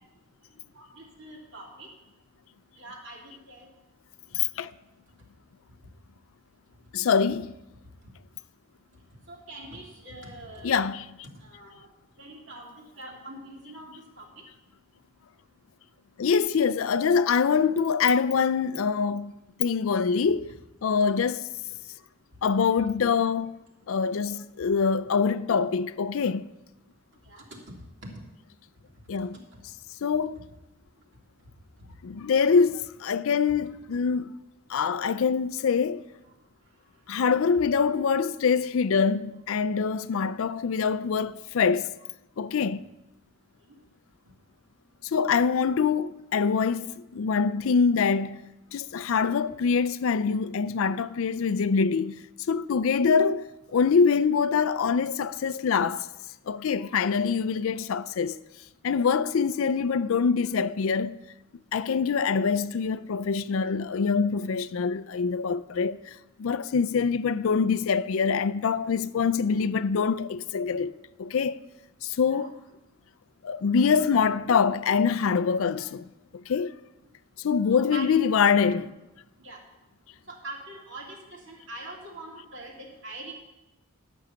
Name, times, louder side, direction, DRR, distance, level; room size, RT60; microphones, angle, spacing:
voice 1, 0.7-1.9 2.8-3.7 9.3-10.8 11.3-11.9 12.2-12.7 13.0-14.4 27.3-27.4 28.0-28.1 72.3-72.5 77.7-78.1 78.5-78.7 79.4-79.6 80.3-83.3, right 2 dB, 55° right, 2.6 m, -43 dB
voice 2, 4.3-4.7 6.9-7.5 10.6-11.1 16.2-20.5 20.8-21.5 22.4-23.6 23.9-26.5 29.1-29.4 30.0-30.4 32.0-34.3 34.7-36.0 37.1-41.9 42.4-42.8 45.0-52.1 52.5-56.1 56.5-58.4 58.8-61.2 61.7-70.9 71.2-71.6 72.0-72.6 73.4-76.1 76.3-76.7 77.4-78.9, left 5 dB, 65° left, 0.4 m, -25 dB
12.0 x 6.2 x 6.9 m
head